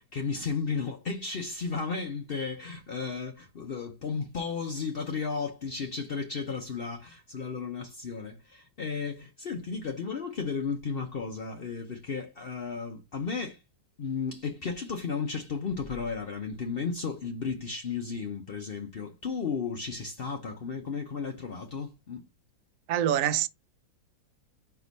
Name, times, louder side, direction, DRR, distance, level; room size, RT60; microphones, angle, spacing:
voice 1, 0.0-13.6 14.0-22.2, left 5 dB, 60° left, 0.6 m, -34 dB
voice 2, 22.9-23.5, right 11 dB, 70° right, 0.8 m, -25 dB
4.8 x 4.4 x 5.4 m
omnidirectional pair, 2.0 m